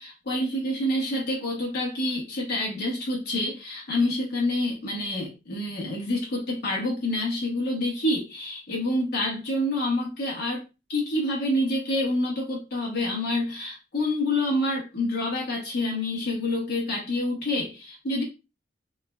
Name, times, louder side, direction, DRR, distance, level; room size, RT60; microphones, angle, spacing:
voice 1, 0.0-10.6 10.9-18.2, left 1 dB, 60° left, 1.0 m, -27 dB
3.6 x 3.2 x 2.2 m
head